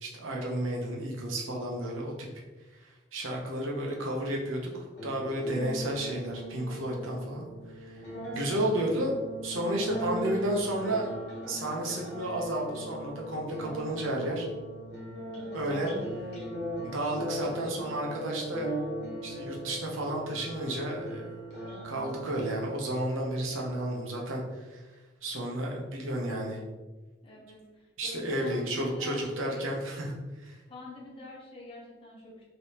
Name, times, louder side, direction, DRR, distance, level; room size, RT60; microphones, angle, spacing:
voice 1, 0.0-2.3 2.8-4.7 5.0-7.5 7.8-8.1 8.3-9.2 9.4-11.1 11.5-14.5 15.5-15.9 16.8-18.7 19.2-21.3 21.8-24.8 25.2-26.6 28.0-30.1 30.4-30.6, right 1 dB, 85° right, -1 dB, 0.8 m, -32 dB
sound 1, 4.9-23.9, equal, 60° left, 0.9 m, -39 dB
voice 2, 27.2-29.7 30.7-32.4, left 2 dB, 25° left, -5 dB, 0.8 m, -46 dB
3.4 x 2.9 x 2.9 m, 1.2 s
head